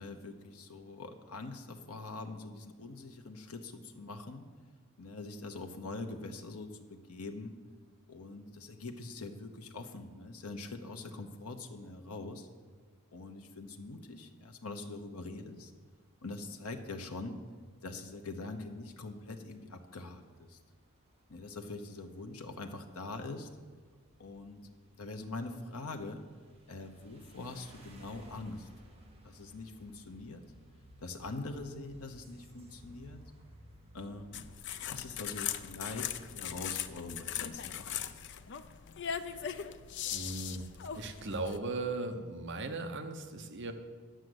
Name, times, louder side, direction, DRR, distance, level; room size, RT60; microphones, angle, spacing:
voice 1, 0.0-4.5 5.0-7.6 8.1-12.5 13.1-15.7 16.2-17.4 17.8-20.6 21.3-23.5 24.2-24.6 25.0-26.2 26.7-28.7 29.2-30.4 31.0-33.2 33.9-34.5 34.8-38.0, left 3 dB, 90° left, 5 dB, 0.9 m, -43 dB
sound 1, 15.3-34.5, equal, 25° right, 1.6 m, -60 dB
sound 2, 34.3-41.6, left 9 dB, 55° left, 0.5 m, -39 dB
voice 2, 39.2-39.6 40.1-40.7 40.9-43.7, right 2 dB, 55° right, 7 dB, 0.9 m, -38 dB
10.5 x 6.3 x 7.9 m, 1.5 s
head